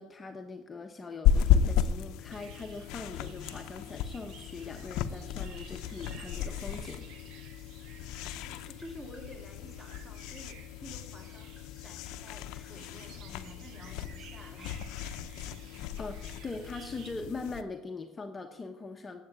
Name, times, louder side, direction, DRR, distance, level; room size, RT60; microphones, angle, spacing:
voice 1, 0.0-7.0 15.7-19.2, left 3 dB, 25° left, 4 dB, 1.0 m, -42 dB
sound 1, 1.2-17.6, left 9 dB, 75° left, 0.7 m, -33 dB
sound 2, 2.3-17.1, right 8 dB, 70° right, 1.2 m, -55 dB
Tap, 7.8-9.3 10.6-12.8 13.5-15.7 16.0-18.0, right 1 dB, 30° right, 4.7 m, -63 dB
voice 2, 8.1-14.8, equal, 10° right, 2 dB, 3.2 m, -51 dB
9.3 x 8.3 x 8.9 m, 1.1 s
supercardioid pair, 100°, 0 cm